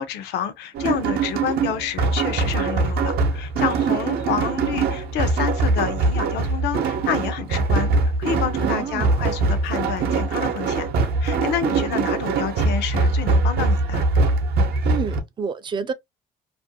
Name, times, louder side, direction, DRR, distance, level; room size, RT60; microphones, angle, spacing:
voice 1, 0.0-7.9 8.2-10.9 11.2-14.0, left 8 dB, 85° left, 0.6 m, -28 dB
sound 1, 0.7-15.2, right 3 dB, 70° right, 0.7 m, -22 dB
voice 2, 8.6-9.2 14.8-15.9, right 6 dB, 30° right, 0.4 m, -29 dB
2.5 x 2.1 x 2.6 m
cardioid pair, 110°, 17 cm